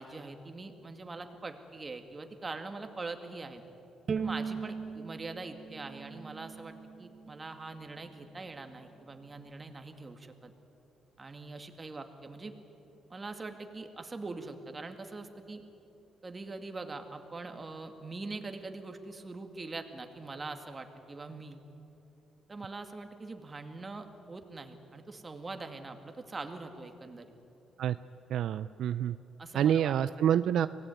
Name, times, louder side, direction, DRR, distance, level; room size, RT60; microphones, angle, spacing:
voice 1, 0.0-3.6 4.2-10.5 11.2-12.6 13.1-15.6 16.2-21.6 22.5-27.3 29.4-30.0, right 3 dB, 30° right, 6 dB, 2.2 m, -43 dB
Bowed string instrument, 4.1-7.3, right 5 dB, 45° right, 1.1 m, -38 dB
voice 2, 28.3-29.2 29.5-30.7, right 10 dB, 75° right, 14 dB, 0.4 m, -27 dB
24.0 x 18.0 x 9.4 m, 2.9 s
cardioid pair, 90°, 0 cm